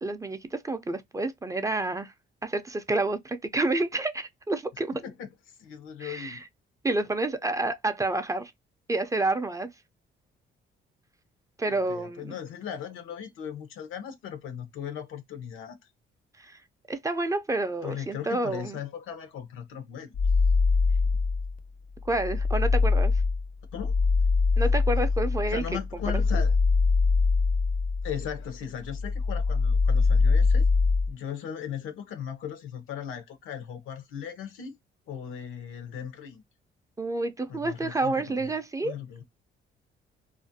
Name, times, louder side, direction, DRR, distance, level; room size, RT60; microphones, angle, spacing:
voice 1, 0.0-2.1 2.4-5.0 6.0-6.4 6.8-8.5 8.9-9.7 11.6-12.3 16.4-16.6 16.9-18.8 22.0-23.2 24.6-25.6 26.1-26.2 37.0-39.0, right 2 dB, 15° right, 0.3 m, -29 dB
voice 2, 5.6-6.4 11.9-15.8 17.8-20.1 23.7-23.9 25.5-26.5 28.0-30.6 31.1-34.7 35.1-36.4 37.5-38.6 38.8-39.2, left 8 dB, 85° left, 0.7 m, -38 dB
sound 1, 20.1-21.6 22.0-28.5 28.8-31.1, left 4 dB, 45° left, 0.5 m, -23 dB
2.4 x 2.1 x 2.5 m
cardioid pair, 90°, 20 cm